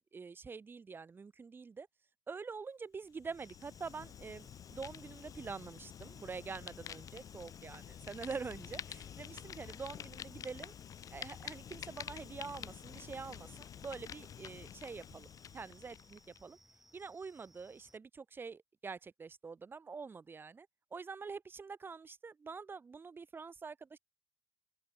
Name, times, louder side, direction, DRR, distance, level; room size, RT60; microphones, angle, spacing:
voice 1, 0.1-1.9 2.3-10.7 11.1-15.3 15.5-16.6 16.9-24.0, right 5 dB, 25° right, 2.1 m, -46 dB
Fire, 3.1-16.4, left 9 dB, 45° left, 1.8 m, -49 dB
sound 1, 3.4-18.0, equal, 5° right, 2.3 m, -66 dB
open air
hypercardioid pair, 70°, 8 cm